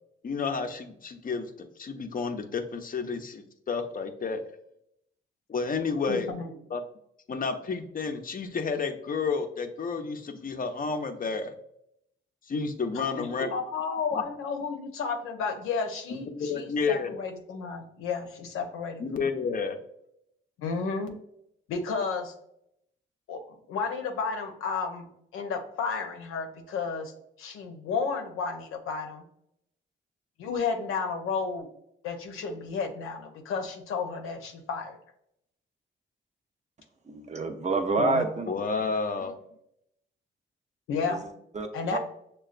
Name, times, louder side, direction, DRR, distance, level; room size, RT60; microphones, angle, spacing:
voice 1, 0.2-4.4 5.5-6.3 6.7-6.8 7.3-11.6 12.5-13.5 14.1-14.2 16.1-17.1 19.0-19.8 38.5-39.3, left 5 dB, 45° left, 7 dB, 0.6 m, -31 dB
voice 2, 6.1-6.5 12.9-19.3 20.6-21.1 21.7-22.3 23.3-23.4 23.7-25.1 25.3-27.1 27.4-29.2 30.4-31.7 32.0-35.0 38.0-38.2 40.9-41.2 41.7-42.0, left 5 dB, 85° left, 4 dB, 0.7 m, -32 dB
voice 3, 37.1-38.5 41.1-42.0, right 3 dB, 35° right, 5 dB, 0.7 m, -29 dB
6.4 x 2.2 x 2.4 m, 0.76 s
supercardioid pair, 60°, 21 cm